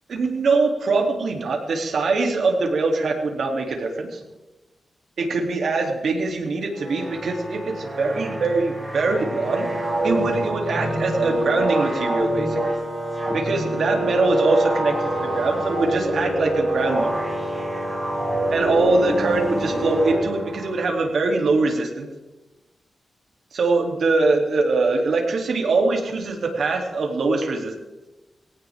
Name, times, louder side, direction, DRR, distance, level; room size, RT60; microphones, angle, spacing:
voice 1, 0.1-4.2 5.2-9.7 10.0-12.6 13.3-17.2 18.5-22.1 23.5-27.7, right 3 dB, 65° right, 1 dB, 3.0 m, -23 dB
sound 1, 6.8-20.9, right 1 dB, 10° right, 5.9 m, -26 dB
19.5 x 17.5 x 3.7 m, 1.0 s
wide cardioid pair, 125°, 0 cm